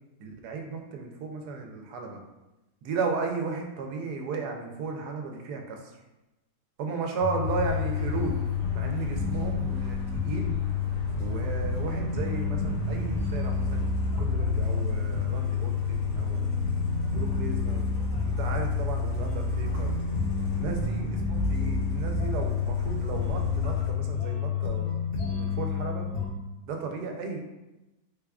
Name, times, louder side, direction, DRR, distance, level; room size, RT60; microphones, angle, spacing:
voice 1, 0.2-2.2 2.8-5.9 6.8-8.4 8.7-10.6 11.2-16.5 17.1-17.9 18.3-20.0 20.5-26.1 26.7-27.4, right 4 dB, 80° right, 3 dB, 1.1 m, -35 dB
sound 1, 7.2-26.3, left 8 dB, 50° left, 1.0 m, -30 dB
Truck, 7.4-23.9, right 1 dB, 80° left, 1.4 m, -33 dB
3.6 x 3.4 x 2.3 m, 1.0 s
omnidirectional pair, 1.7 m